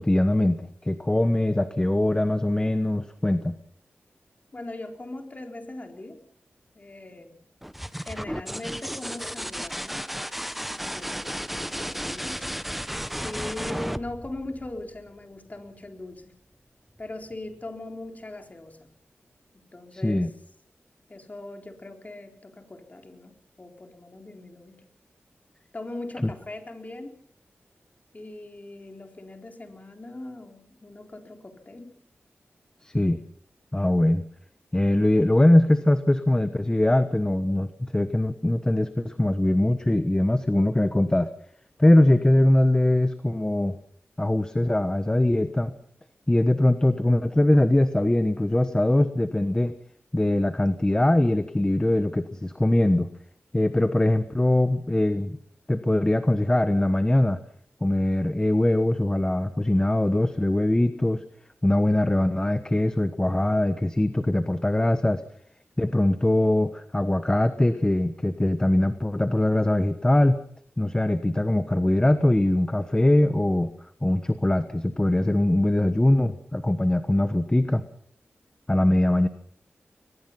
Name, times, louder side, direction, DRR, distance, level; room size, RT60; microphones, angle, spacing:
voice 1, 0.0-3.5 19.9-20.3 32.8-33.2 33.7-34.2 34.7-41.3 41.8-43.8 44.2-45.7 46.3-49.7 50.1-53.1 53.5-55.4 55.7-57.4 57.8-61.2 61.6-65.2 65.8-70.4 70.8-73.7 74.0-77.8 78.7-79.3, left 1 dB, 15° left, 10 dB, 1.2 m, -22 dB
voice 2, 4.5-6.2 6.7-7.4 8.0-10.1 10.8-11.3 11.6-12.5 13.1-16.4 17.0-18.9 19.5-20.3 21.1-24.9 25.7-27.1 28.1-32.0, left 2 dB, 35° left, 4 dB, 4.2 m, -40 dB
sound 1, 7.6-15.2 17.0-17.5, equal, 5° right, 1.0 m, -34 dB
23.0 x 21.0 x 5.8 m, 0.63 s
wide cardioid pair, 70°, 4 cm